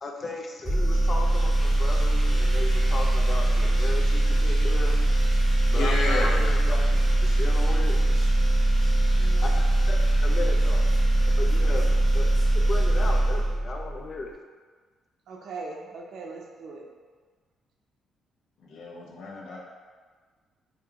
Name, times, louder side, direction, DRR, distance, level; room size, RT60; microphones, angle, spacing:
voice 1, 0.0-5.0 5.7-6.8 7.2-8.0 9.4-10.0 10.2-10.8 11.4-14.3, left 3 dB, 40° left, 2 dB, 0.4 m, -36 dB
sound 1, 0.6-14.0, right 1 dB, 5° left, 1.4 m, -22 dB
voice 2, 5.6-6.4 6.9-7.0 18.6-19.6, left 2 dB, 85° left, -3 dB, 0.7 m, -31 dB
voice 3, 9.1-9.6 15.3-16.8, right 4 dB, 70° right, 0 dB, 0.5 m, -40 dB
2.9 x 2.5 x 3.5 m, 1.5 s
cardioid pair, 90°, 0 cm